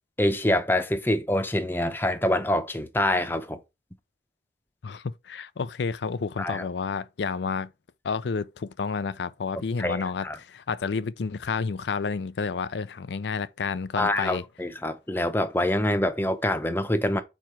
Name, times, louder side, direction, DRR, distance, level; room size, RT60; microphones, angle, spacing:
voice 1, 0.2-3.6 6.4-6.7 9.8-10.4 14.0-17.2, left 1 dB, 10° left, 0.7 m, -25 dB
voice 2, 4.8-7.7 8.0-14.4, left 5 dB, 85° left, 0.5 m, -30 dB
4.7 x 4.3 x 5.6 m
head